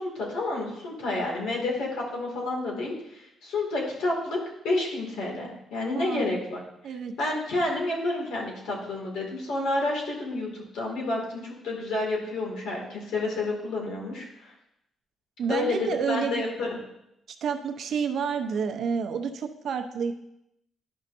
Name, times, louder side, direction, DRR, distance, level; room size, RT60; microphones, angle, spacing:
voice 1, 0.0-4.4 4.6-6.6 7.2-14.5 15.5-16.7, left 2 dB, 80° left, -1 dB, 2.3 m, -30 dB
voice 2, 6.0-6.4 6.8-7.1 15.4-16.4 17.4-20.1, right 6 dB, 60° right, 6 dB, 0.7 m, -29 dB
11.5 x 5.5 x 2.7 m, 0.83 s
cardioid pair, 115°, 0 cm